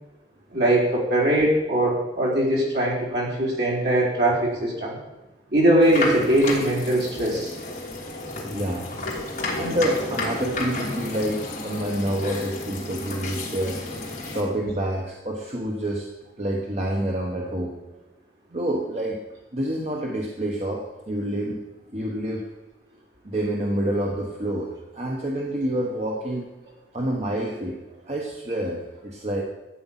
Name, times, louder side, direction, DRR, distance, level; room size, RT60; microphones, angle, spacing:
voice 1, 0.5-5.0 5.5-7.5, right 1 dB, 65° right, -5 dB, 4.4 m, -21 dB
sound 1, 5.8-14.4, left 2 dB, 40° left, 3.1 m, -32 dB
voice 2, 8.4-8.9 9.2-13.8 14.3-16.1 16.4-17.8 18.5-19.2 19.5-21.6 21.9-22.5 23.2-26.5 26.9-27.8 28.0-29.4, right 1 dB, 40° right, -1 dB, 1.3 m, -28 dB
13.0 x 8.8 x 5.9 m, 1.0 s
head